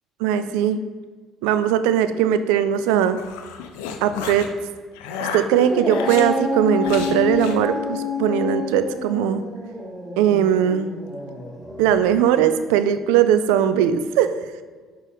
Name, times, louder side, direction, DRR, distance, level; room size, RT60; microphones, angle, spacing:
voice 1, 0.2-0.8 1.4-3.2 4.0-4.5 5.3-9.4 10.2-10.9 11.8-14.3, right 9 dB, 85° right, 11 dB, 0.3 m, -19 dB
sound 1, 2.9-4.5 4.9-6.3 6.8-7.6, left 6 dB, 85° left, 0.5 m, -32 dB
Dog, 5.4-12.1, left 3 dB, 5° right, 1.0 m, -28 dB
6.2 x 4.4 x 3.5 m, 1.5 s
supercardioid pair, 80°, 0 cm